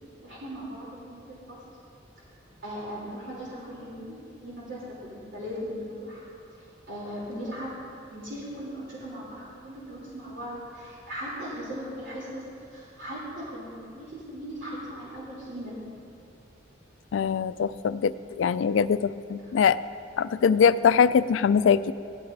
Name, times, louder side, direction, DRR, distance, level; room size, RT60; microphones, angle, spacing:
voice 1, 0.2-1.6 2.6-6.2 6.5-7.7 8.1-12.4 12.7-15.8, equal, 80° right, -7 dB, 3.2 m, -38 dB
voice 2, 17.1-19.8 20.2-21.9, left 6 dB, 90° left, 15 dB, 0.3 m, -22 dB
17.0 x 13.5 x 2.7 m, 2.6 s
head